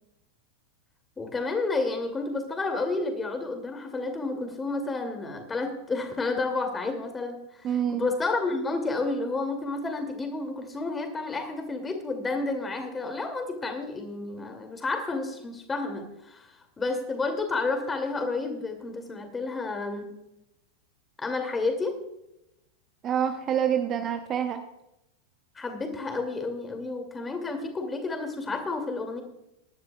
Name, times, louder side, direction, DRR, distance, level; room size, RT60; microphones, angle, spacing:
voice 1, 1.2-20.2 21.2-22.0 25.6-29.2, left 3 dB, 15° left, 5 dB, 2.5 m, -31 dB
voice 2, 7.6-8.1 23.0-24.6, right 9 dB, 30° right, 6 dB, 1.0 m, -27 dB
22.5 x 11.5 x 2.3 m, 0.88 s
figure-of-eight pair, 90°, 0 cm